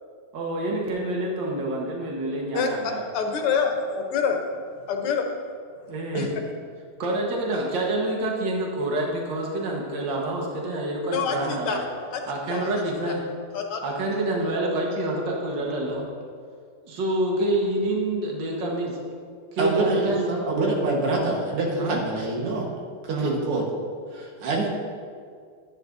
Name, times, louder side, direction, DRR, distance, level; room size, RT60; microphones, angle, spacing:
voice 1, 0.3-3.0 5.9-6.3 7.0-11.8 12.3-13.2 13.8-16.1 16.8-19.0 19.5-20.4 21.8-22.0 23.1-23.4, right 1 dB, 60° right, -1 dB, 2.0 m, -27 dB
voice 2, 3.1-4.4 4.9-5.2 6.1-6.3 11.1-11.8 12.5-12.7 13.5-13.8, left 6 dB, 80° left, 3 dB, 1.9 m, -25 dB
voice 3, 19.6-20.1 20.5-22.7 23.0-23.6 24.1-24.7, right 3 dB, 85° right, -1 dB, 2.4 m, -25 dB
11.0 x 10.0 x 2.6 m, 2.1 s
omnidirectional pair, 2.4 m